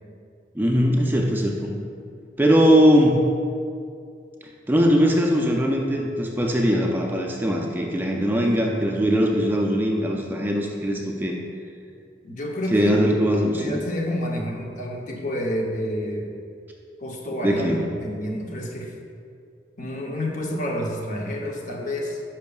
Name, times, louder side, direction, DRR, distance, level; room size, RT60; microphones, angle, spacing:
voice 1, 0.5-1.7 2.4-3.2 4.7-11.4 12.7-13.8 17.4-17.8, equal, 10° right, 0 dB, 0.4 m, -20 dB
voice 2, 12.2-12.9 13.3-16.3 17.0-17.7 18.0-18.9 19.8-22.2, equal, 45° left, 0 dB, 0.8 m, -29 dB
10.5 x 5.7 x 2.3 m, 2.3 s
head